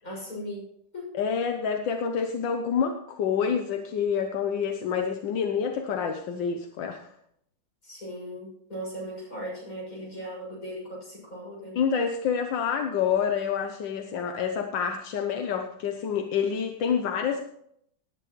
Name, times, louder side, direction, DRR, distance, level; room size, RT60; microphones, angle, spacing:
voice 1, 0.0-1.2 7.8-11.8, equal, 50° left, -3 dB, 7.3 m, -38 dB
voice 2, 1.1-7.1 11.7-17.5, left 7 dB, 85° left, 5 dB, 1.6 m, -27 dB
18.5 x 10.5 x 3.1 m, 0.70 s
omnidirectional pair, 2.0 m